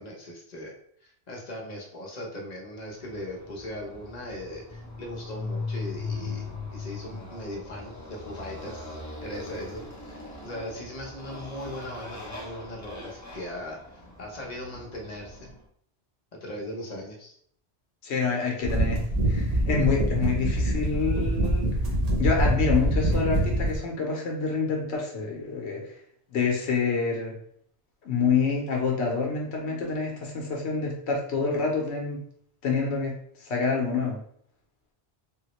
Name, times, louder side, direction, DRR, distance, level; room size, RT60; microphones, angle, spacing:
voice 1, 0.0-15.5 16.3-17.4, left 1 dB, 45° left, -1 dB, 0.8 m, -39 dB
Motorcycle, 2.9-15.6, left 3 dB, 20° left, 0.5 m, -39 dB
voice 2, 18.0-19.0 19.3-21.7 22.2-25.9 26.3-27.3 28.0-32.2 32.6-33.1 33.4-34.2, left 4 dB, 80° left, -1 dB, 1.0 m, -27 dB
sound 1, 18.6-23.8, right 1 dB, 40° right, 0.7 m, -25 dB
3.6 x 2.1 x 2.9 m, 0.64 s
omnidirectional pair, 1.1 m